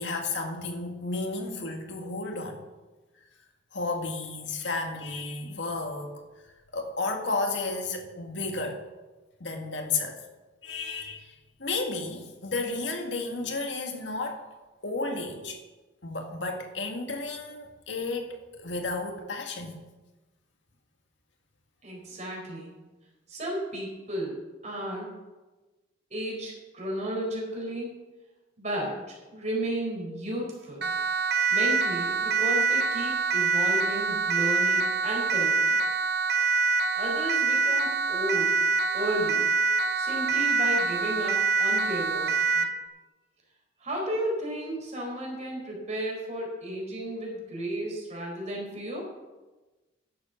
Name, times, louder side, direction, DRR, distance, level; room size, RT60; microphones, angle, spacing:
voice 1, 0.0-2.6 3.7-6.2 6.7-8.8 9.4-10.2 10.6-14.4 14.8-15.6 16.0-19.8, left 3 dB, 80° left, 3 dB, 1.9 m, -32 dB
voice 2, 21.8-22.8 23.3-25.1 26.1-27.9 28.6-30.9 31.5-35.8 36.9-38.6 38.9-39.5 40.0-42.7 43.8-49.1, right 1 dB, 40° right, -1 dB, 4.2 m, -33 dB
Siren, 30.8-42.8, right 4 dB, 60° right, 0.8 m, -25 dB
11.5 x 7.3 x 7.1 m, 1.2 s
head